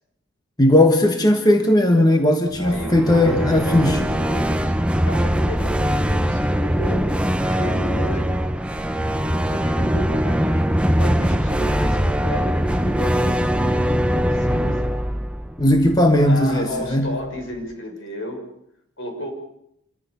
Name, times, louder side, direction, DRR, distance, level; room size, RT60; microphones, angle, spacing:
voice 1, 0.6-4.0 15.6-17.1, left 1 dB, 20° left, 5 dB, 1.4 m, -17 dB
sound 1, 2.5-16.5, equal, 5° right, 0.8 m, -21 dB
voice 2, 2.6-4.7 5.0-7.1 7.4-8.3 9.4-13.7 14.1-14.9 16.2-18.4 19.0-19.3, equal, 60° left, 2 dB, 6.5 m, -33 dB
27.0 x 14.5 x 7.0 m, 0.76 s
head